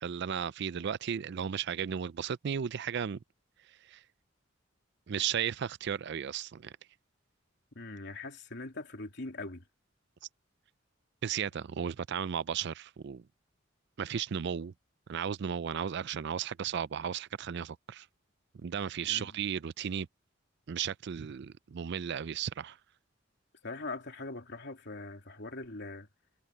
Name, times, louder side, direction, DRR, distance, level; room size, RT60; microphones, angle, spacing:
voice 1, 0.0-3.2 3.9-4.0 5.1-6.7 11.2-13.2 14.0-14.7 15.1-18.1 18.6-20.1 20.7-22.8, right 8 dB, 60° right, 0.4 m, -35 dB
voice 2, 7.7-9.6 19.1-19.3 23.6-26.1, left 2 dB, 60° left, 2.9 m, -41 dB
head